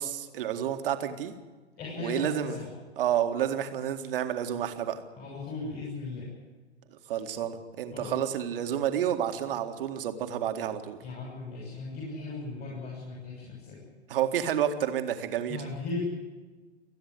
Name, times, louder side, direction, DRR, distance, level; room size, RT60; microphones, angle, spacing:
voice 1, 0.0-1.3 2.0-2.6 3.0-5.0 7.1-11.0 14.1-15.7, right 10 dB, 55° right, 7 dB, 2.0 m, -30 dB
voice 2, 1.8-2.7 5.2-6.3 7.9-8.2 11.0-13.8 15.5-16.0, left 3 dB, 30° left, -2 dB, 6.5 m, -37 dB
29.0 x 10.0 x 9.7 m, 1.3 s
figure-of-eight pair, 100°, 33 cm